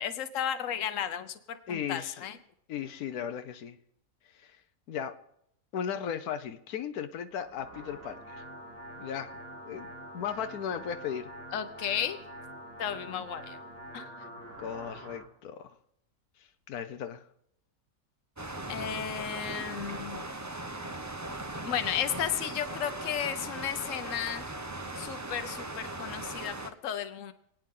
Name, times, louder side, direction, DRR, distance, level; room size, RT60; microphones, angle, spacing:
voice 1, 0.0-2.4 11.5-12.2 12.8-13.6 13.9-14.1 18.7-20.2 21.6-24.5 24.9-27.3, left 9 dB, 65° left, 11 dB, 1.2 m, -34 dB
voice 2, 1.7-2.2 2.7-3.8 4.4-4.6 4.9-5.2 5.7-8.4 9.0-9.3 9.7-9.9 10.1-11.3 14.2-14.3 14.6-15.8 16.4-17.2, left 8 dB, 90° left, 9 dB, 1.3 m, -36 dB
sound 1, 7.3-15.3, right 1 dB, 85° right, 2.8 m, -46 dB
sound 2, 18.4-26.7, right 2 dB, 20° right, 0.5 m, -39 dB
27.5 x 9.3 x 3.7 m, 0.75 s
omnidirectional pair, 1.5 m